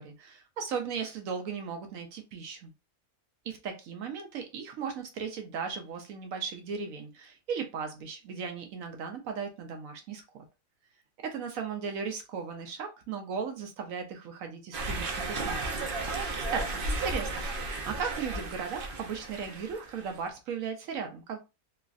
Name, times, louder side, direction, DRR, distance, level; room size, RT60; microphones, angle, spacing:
voice 1, 0.0-2.7 3.4-10.4 11.2-15.9 16.5-21.4, right 6 dB, 70° right, 5 dB, 1.0 m, -37 dB
sound 1, 14.7-20.2, right 2 dB, 55° right, 0.6 m, -34 dB
3.1 x 2.4 x 2.4 m, 0.27 s
omnidirectional pair, 1.5 m